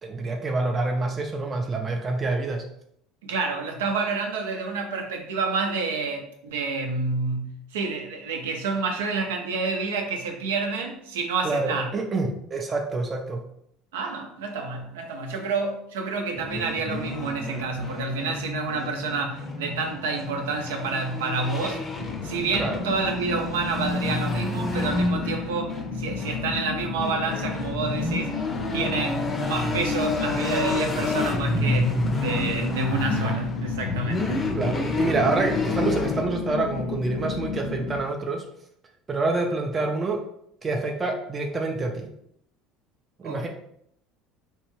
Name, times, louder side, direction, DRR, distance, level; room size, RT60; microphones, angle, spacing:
voice 1, 0.0-2.6 11.4-13.4 22.6-22.8 34.5-38.4 39.1-40.2 40.6-42.1 43.2-43.5, right 3 dB, 25° right, 2 dB, 0.4 m, -27 dB
voice 2, 3.2-11.9 13.9-21.8 22.2-28.4 28.7-34.5 43.2-43.5, right 4 dB, 85° right, 3 dB, 0.5 m, -29 dB
sound 1, 16.4-36.2, left 2 dB, 30° left, 0.6 m, -29 dB
sound 2, 22.0-38.0, left 6 dB, 85° left, 0.4 m, -33 dB
3.0 x 2.2 x 3.1 m, 0.72 s
supercardioid pair, 85°, 0 cm